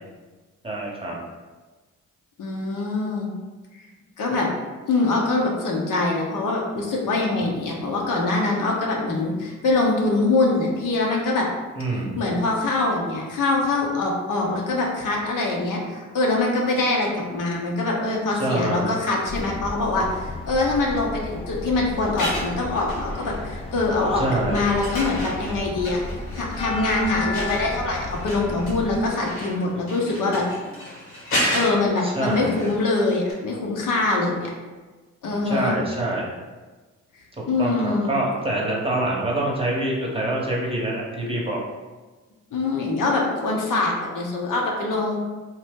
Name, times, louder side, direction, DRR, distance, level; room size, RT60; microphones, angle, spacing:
voice 1, 0.6-1.2 11.8-12.2 18.4-19.0 24.1-24.7 32.0-32.7 35.4-36.4 37.6-41.6, right 1 dB, 15° right, -4 dB, 0.9 m, -26 dB
voice 2, 2.4-3.3 4.2-4.5 4.9-11.5 11.9-26.0 26.3-30.5 31.2-34.5 35.2-35.7 37.5-38.2 42.5-45.2, left 2 dB, 60° left, -1 dB, 0.7 m, -24 dB
sound 1, 19.3-29.0, left 2 dB, 15° left, 0.3 m, -33 dB
sound 2, 22.2-23.6 24.0-33.0 33.3-33.4, equal, 75° left, 1.2 m, -32 dB
2.9 x 2.0 x 3.5 m, 1.3 s
hypercardioid pair, 45°, 36 cm